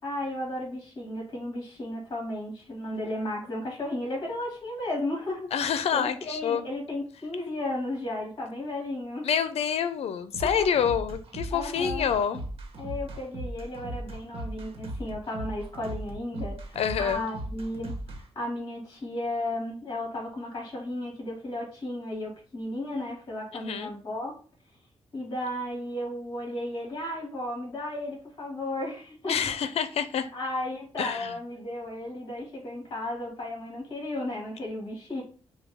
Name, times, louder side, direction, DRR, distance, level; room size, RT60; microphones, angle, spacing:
voice 1, 0.0-5.5 5.9-9.3 10.4-10.7 11.5-12.1 12.8-24.3 25.1-29.4 30.3-35.2, left 1 dB, 40° left, 2.3 m, -34 dB
voice 2, 5.5-6.6 9.2-12.4 16.8-17.3 23.5-23.9 29.3-30.3 31.0-31.4, left 7 dB, 80° left, 0.6 m, -27 dB
sound 1, 10.3-18.2, right 1 dB, 65° right, 1.3 m, -37 dB
6.4 x 2.3 x 3.5 m
wide cardioid pair, 120°, 11 cm